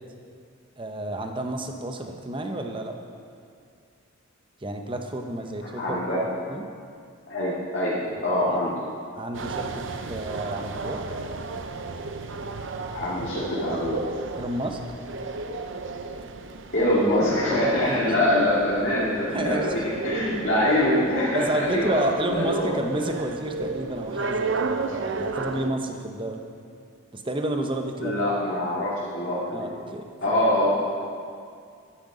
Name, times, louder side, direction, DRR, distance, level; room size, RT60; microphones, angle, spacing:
voice 1, 0.8-2.9 4.6-6.0 6.5-6.7 8.2-8.3 8.6-8.7 9.1-9.8 10.1-11.0 14.4-14.8 17.8-18.1 19.3-19.7 21.3-26.4 27.1-28.2 29.5-30.4, right 1 dB, 20° right, 4 dB, 0.8 m, -30 dB
voice 2, 5.8-6.2 7.3-7.9 8.2-8.7 12.9-14.0 16.7-22.7 28.0-29.7 30.2-30.7, left 1 dB, 55° left, -10 dB, 2.5 m, -24 dB
sound 1, 9.3-25.7, right 3 dB, 55° right, 0.6 m, -33 dB
12.5 x 11.0 x 5.0 m, 2.3 s
head